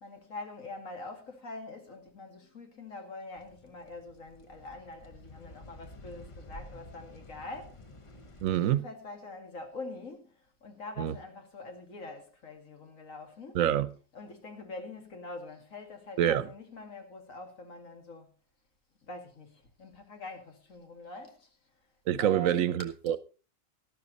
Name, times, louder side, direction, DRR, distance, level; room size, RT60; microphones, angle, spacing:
voice 1, 0.0-7.8 8.6-13.7 14.1-18.3 19.0-21.6 22.2-22.8, left 2 dB, 70° left, 2.6 m, -44 dB
sound 1, 3.4-8.6, left 1 dB, 25° left, 0.8 m, -51 dB
voice 2, 8.4-8.8 11.0-11.1 13.5-13.9 16.2-16.4 22.1-23.2, right 10 dB, 75° right, 1.1 m, -26 dB
12.5 x 12.0 x 4.0 m
omnidirectional pair, 1.4 m